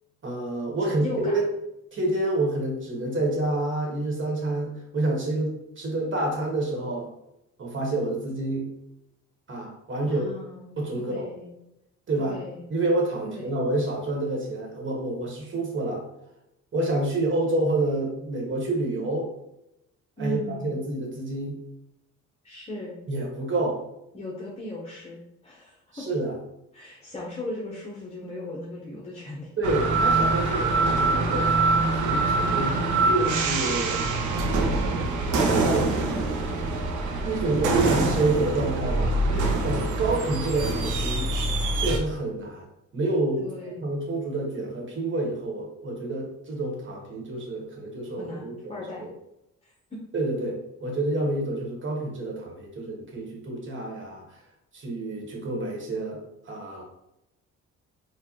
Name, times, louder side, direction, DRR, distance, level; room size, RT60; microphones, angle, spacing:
voice 1, 0.2-1.5 1.9-7.1 7.6-8.7 9.5-10.3 10.8-11.3 12.1-12.4 12.7-16.0 16.7-19.3 20.2-21.6 23.1-23.8 25.9-26.3 29.6-34.1 35.6-36.4 37.2-41.3 41.7-42.7 42.9-49.1 50.1-54.4 54.7-56.8, right 2 dB, 40° right, -1 dB, 1.4 m, -28 dB
voice 2, 0.8-1.4 10.0-11.5 12.2-12.6 13.2-13.5 20.2-20.7 22.4-23.0 24.1-26.0 26.7-29.5 39.3-39.5 43.4-43.9 48.2-49.0 49.6-50.0, left 1 dB, 20° left, -6 dB, 0.9 m, -38 dB
sound 1, 29.6-42.0, right 3 dB, 80° right, 0.7 m, -24 dB
4.6 x 2.4 x 3.0 m, 0.86 s
cardioid pair, 90°, 30 cm